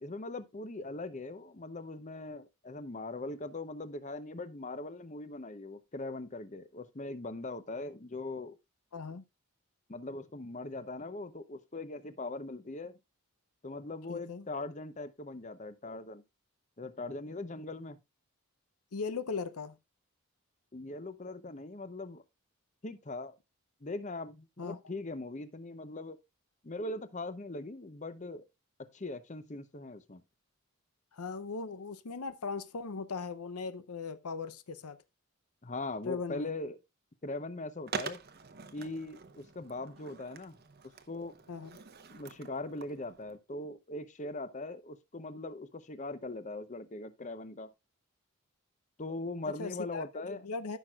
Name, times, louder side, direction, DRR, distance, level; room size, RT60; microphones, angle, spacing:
voice 1, 0.0-8.6 9.9-13.0 13.6-16.2 16.8-18.0 20.7-22.2 22.8-23.4 23.8-26.2 26.6-28.4 28.8-30.2 35.6-36.8 37.2-38.2 38.7-40.6 41.1-41.4 42.1-47.7 49.0-50.4, left 2 dB, 30° left, 0.7 m, -40 dB
voice 2, 8.9-9.2 14.1-14.5 18.9-19.8 24.6-24.8 31.1-35.0 36.1-36.5 41.5-41.8 49.6-50.8, left 4 dB, 85° left, 0.7 m, -38 dB
Skateboard, 37.9-43.4, right 5 dB, 45° right, 0.8 m, -45 dB
14.0 x 6.1 x 2.4 m
head